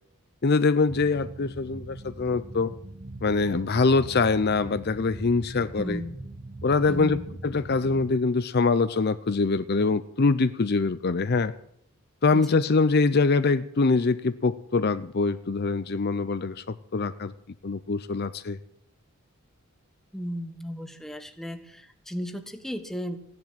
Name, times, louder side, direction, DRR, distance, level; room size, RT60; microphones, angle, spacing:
voice 1, 0.4-2.7 3.2-6.0 6.6-11.5 12.2-17.3 17.6-18.6, left 4 dB, 50° left, 13 dB, 0.6 m, -24 dB
sound 1, 0.9-8.1, right 2 dB, 25° right, 0.7 m, -41 dB
voice 2, 5.8-6.2 6.9-7.2 12.3-12.6 20.1-23.2, equal, ahead, 7 dB, 1.2 m, -35 dB
16.0 x 10.5 x 7.7 m, 0.71 s
head